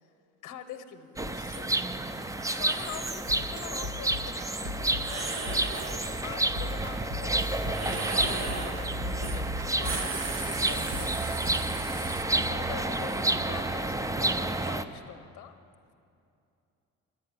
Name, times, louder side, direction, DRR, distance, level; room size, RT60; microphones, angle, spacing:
voice 1, 0.4-1.7 2.3-5.4 6.2-8.5 9.0-15.5, left 9 dB, 85° left, 8 dB, 0.9 m, -44 dB
sound 1, 1.2-14.8, right 2 dB, 10° right, 0.5 m, -30 dB
sound 2, 1.3-1.6 2.3-3.2 5.0-6.0 7.7-8.8 9.2-9.4 9.7-12.2, right 3 dB, 60° right, 1.5 m, -37 dB
sound 3, 2.9-11.5, left 2 dB, 85° right, 1.5 m, -40 dB
11.5 x 8.7 x 9.6 m, 2.6 s
cardioid pair, 90°, 30 cm